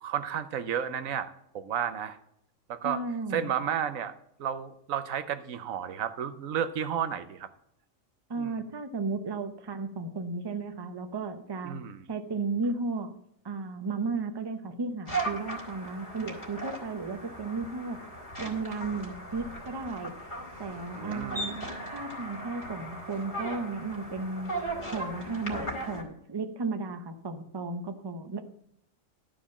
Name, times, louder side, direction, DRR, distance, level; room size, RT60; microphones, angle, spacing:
voice 1, 0.0-2.2 2.7-3.0 3.3-4.1 4.4-7.5 8.4-8.6 11.6-12.1 20.9-21.5, right 8 dB, 85° right, 11 dB, 1.2 m, -32 dB
voice 2, 2.8-3.5 8.3-11.8 12.1-13.1 13.4-18.0 18.4-20.2 20.6-21.7 21.9-24.5 24.9-28.4, right 3 dB, 25° right, 7 dB, 0.7 m, -34 dB
sound 1, 15.1-26.0, right 2 dB, 55° left, 2.8 m, -37 dB
12.0 x 5.0 x 7.2 m, 0.76 s
omnidirectional pair, 1.4 m